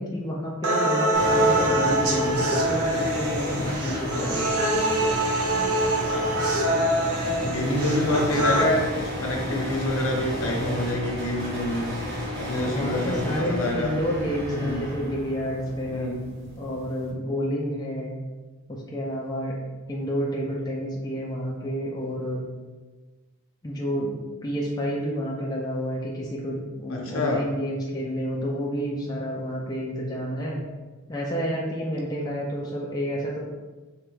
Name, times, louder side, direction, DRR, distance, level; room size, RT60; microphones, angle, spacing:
voice 1, 0.0-4.5 12.7-16.1 16.6-18.1 18.7-19.6 19.9-22.4 23.6-30.6 31.1-33.4, equal, 15° left, -4 dB, 0.4 m, -29 dB
sound 1, 0.6-8.6, right 1 dB, 80° right, 0.6 m, -24 dB
sound 2, 1.1-17.1, left 1 dB, 50° right, 1.1 m, -33 dB
voice 2, 7.3-8.8 9.2-11.9 12.4-14.0 14.5-14.9 15.9-16.3 26.9-27.4, left 1 dB, 65° left, -1 dB, 0.8 m, -27 dB
3.4 x 3.0 x 3.2 m, 1.3 s
head